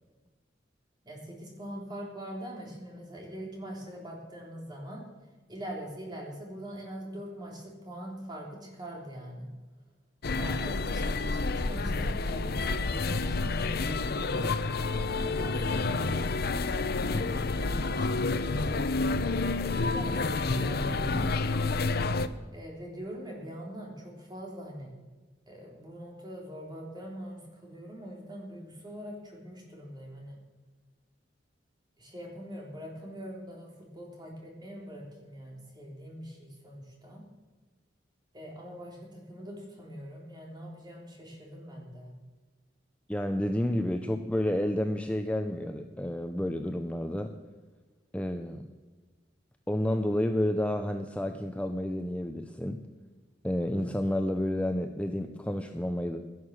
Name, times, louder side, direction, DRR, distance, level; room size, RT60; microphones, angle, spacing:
voice 1, 1.0-5.1 5.5-9.5 10.4-14.9 15.2-17.0 17.4-18.9 19.5-21.8 22.5-24.9 25.5-30.4 32.0-37.2 38.3-42.1, equal, 25° right, -1 dB, 3.5 m, -43 dB
sound 1, 10.2-22.3, left 3 dB, 55° left, 0.7 m, -29 dB
voice 2, 43.1-47.3 48.1-48.6 49.7-52.8 53.4-56.2, left 1 dB, 5° left, 6 dB, 0.6 m, -30 dB
13.5 x 11.0 x 7.5 m, 1.3 s
head